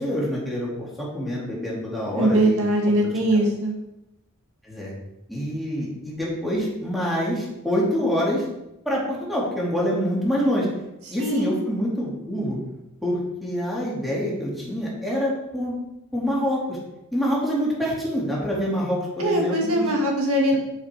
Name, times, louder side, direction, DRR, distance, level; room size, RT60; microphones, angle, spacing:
voice 1, 0.0-3.4 4.6-4.9 5.3-8.4 8.8-10.7 11.1-12.6 13.0-15.7 16.1-16.8 17.1-19.9, equal, ahead, -6 dB, 3.3 m, -26 dB
voice 2, 2.1-3.8 11.2-11.6 19.2-20.6, right 1 dB, 75° right, 0 dB, 2.1 m, -21 dB
8.6 x 8.1 x 4.9 m, 0.90 s
head